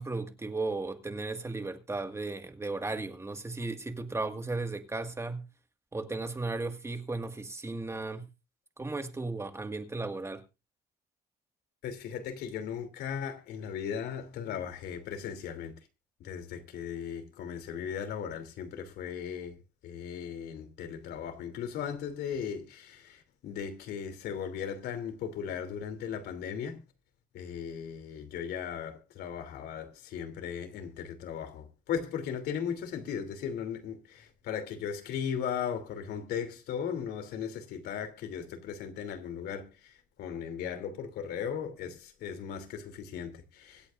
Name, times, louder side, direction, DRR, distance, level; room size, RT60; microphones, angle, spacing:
voice 1, 0.0-5.4 5.9-8.3 8.8-10.4, right 3 dB, 15° right, 1.7 m, -35 dB
voice 2, 11.8-15.7 16.2-19.6 19.8-26.8 27.3-43.9, left 8 dB, 75° left, 3.0 m, -37 dB
24.5 x 8.5 x 2.5 m
cardioid pair, 110°, 17 cm